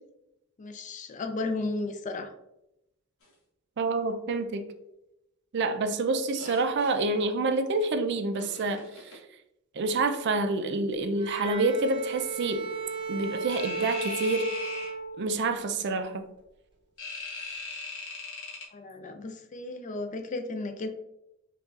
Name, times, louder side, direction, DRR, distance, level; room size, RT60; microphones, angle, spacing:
voice 1, 0.6-2.3 18.7-20.9, left 2 dB, 35° left, 7 dB, 0.4 m, -34 dB
voice 2, 3.8-4.7 5.5-9.1 9.7-12.7 13.1-14.5 15.2-16.2, right 3 dB, 55° right, 8 dB, 0.4 m, -28 dB
sound 1, 6.3-6.9 8.3-9.2 13.5-14.9 17.0-18.6, left 3 dB, 70° left, 0.9 m, -39 dB
Bowed string instrument, 11.2-15.6, right 4 dB, 25° right, 0.8 m, -35 dB
5.2 x 2.4 x 2.4 m, 0.87 s
head